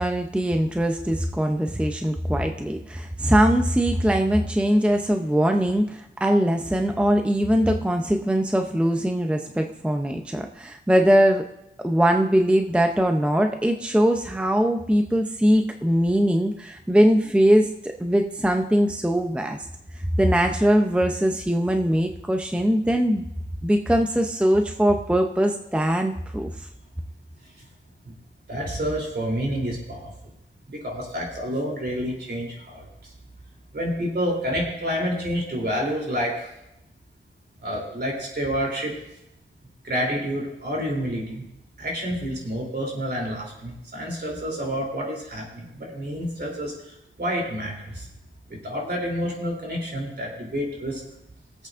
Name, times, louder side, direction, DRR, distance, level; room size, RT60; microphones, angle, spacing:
voice 1, 0.0-11.4 11.8-19.7 20.2-23.2 23.6-26.7, equal, 5° right, 4 dB, 0.6 m, -21 dB
voice 2, 28.5-30.1 30.7-33.1 33.7-36.5 37.6-38.9 39.8-41.4 41.8-48.1 48.5-51.0, equal, 55° right, -1 dB, 3.3 m, -29 dB
21.5 x 8.1 x 2.5 m, 0.84 s
wide cardioid pair, 105°, 20 cm